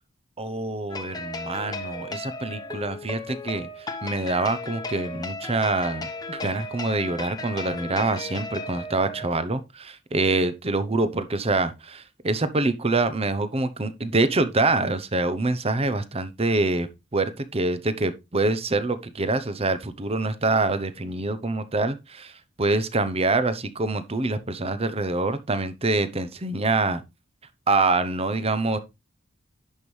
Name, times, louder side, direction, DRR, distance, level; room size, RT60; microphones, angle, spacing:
voice 1, 0.4-22.3 22.6-27.0 27.7-28.8, right 2 dB, 30° right, 0.8 m, -25 dB
sound 1, 0.9-9.3, left 2 dB, 20° left, 1.0 m, -35 dB
10.5 x 5.4 x 3.2 m
head